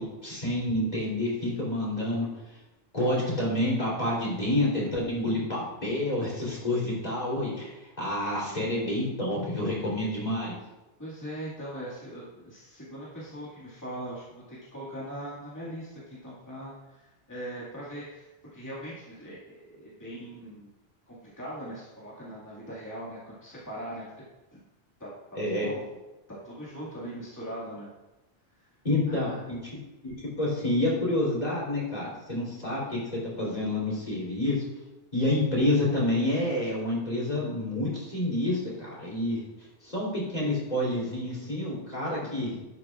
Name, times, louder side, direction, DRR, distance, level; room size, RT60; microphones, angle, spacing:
voice 1, 0.0-2.3 2.9-10.6 25.4-25.7 28.8-29.6 30.0-34.6 35.1-39.4 39.8-42.6, left 1 dB, 40° left, -6 dB, 3.5 m, -28 dB
voice 2, 11.0-20.7 21.1-24.2 24.5-24.6 25.0-25.9 26.3-27.9 29.1-29.5 42.2-42.3, right 1 dB, 15° left, -8 dB, 2.0 m, -41 dB
11.5 x 9.2 x 2.4 m, 1.0 s
omnidirectional pair, 1.1 m